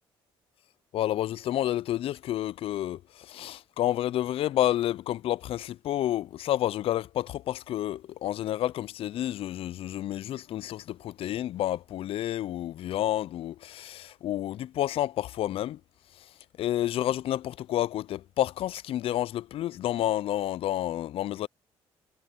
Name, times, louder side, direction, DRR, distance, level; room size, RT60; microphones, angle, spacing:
voice 1, 0.9-15.8 16.6-21.5, left 13 dB, 60° left, 0.4 m, -30 dB
supercardioid pair, 75°, 11 cm